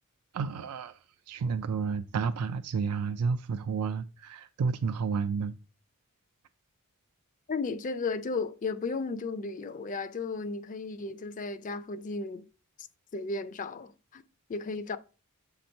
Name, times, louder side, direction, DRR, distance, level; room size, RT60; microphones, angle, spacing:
voice 1, 0.3-1.0 1.3-5.5, right 5 dB, 90° right, 0.4 m, -31 dB
voice 2, 7.5-12.5 13.1-14.2 14.5-15.0, left 4 dB, 35° left, 0.4 m, -34 dB
7.6 x 3.0 x 5.2 m
head